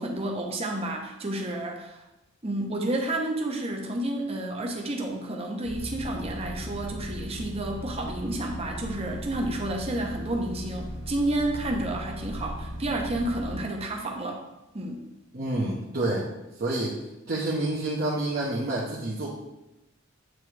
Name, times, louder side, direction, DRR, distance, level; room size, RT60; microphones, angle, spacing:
voice 1, 0.0-2.0 2.4-14.4 14.7-15.1, right 1 dB, 30° right, 1 dB, 0.8 m, -30 dB
sound 1, 5.6-13.6, equal, 75° right, 1.3 m, -37 dB
voice 2, 15.3-16.3 16.6-16.9 17.3-19.3, right 2 dB, 50° right, -6 dB, 1.0 m, -28 dB
7.8 x 3.7 x 3.3 m, 0.97 s
head